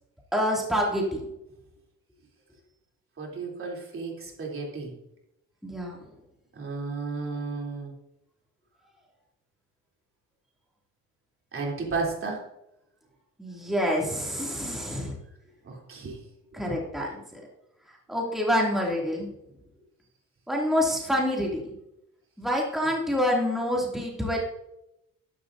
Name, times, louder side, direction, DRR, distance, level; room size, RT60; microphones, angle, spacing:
voice 1, 0.3-1.2 5.6-6.0 13.4-15.2 16.5-17.2 18.1-19.3 20.5-21.7 22.4-24.4, equal, ahead, -3 dB, 2.7 m, -27 dB
voice 2, 3.2-4.9 6.6-7.9 11.5-12.4 15.6-16.2, right 4 dB, 45° right, -1 dB, 3.5 m, -33 dB
12.0 x 11.0 x 2.7 m, 0.85 s
cardioid pair, 90°, 30 cm